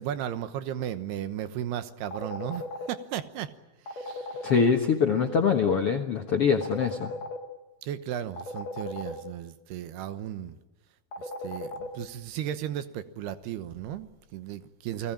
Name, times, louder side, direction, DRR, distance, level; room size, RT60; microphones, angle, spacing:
voice 1, 0.0-3.5 3.9-4.5 5.1-5.4 7.8-10.6 11.2-15.1, right 10 dB, 80° right, 12 dB, 3.1 m, -35 dB
sound 1, 2.1-2.9 3.9-4.6 6.6-7.4 8.4-9.1 11.1-11.9, left 2 dB, 50° left, 3.3 m, -35 dB
voice 2, 4.4-7.1, left 6 dB, 65° left, 4 dB, 1.4 m, -24 dB
29.5 x 19.0 x 8.9 m, 1.1 s
omnidirectional pair, 4.7 m